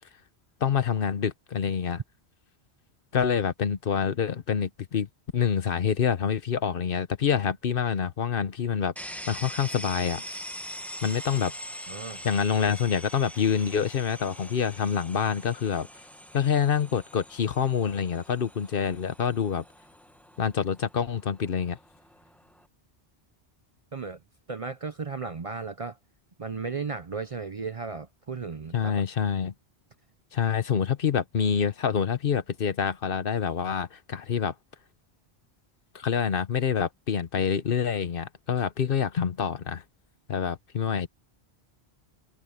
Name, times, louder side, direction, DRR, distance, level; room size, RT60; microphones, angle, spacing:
voice 1, 0.6-2.0 3.1-5.1 5.3-10.4 11.0-11.5 12.2-15.9 16.3-19.6 20.4-21.8 28.7-29.5 30.3-34.5 35.9-39.8 40.3-41.1, left 7 dB, 60° left, 1.0 m, -26 dB
sound 1, 9.0-22.7, equal, ahead, 1.2 m, -43 dB
voice 2, 11.9-12.2 23.9-24.2 24.5-26.0 26.4-29.0, right 4 dB, 40° right, 0.6 m, -35 dB
omnidirectional pair, 1.1 m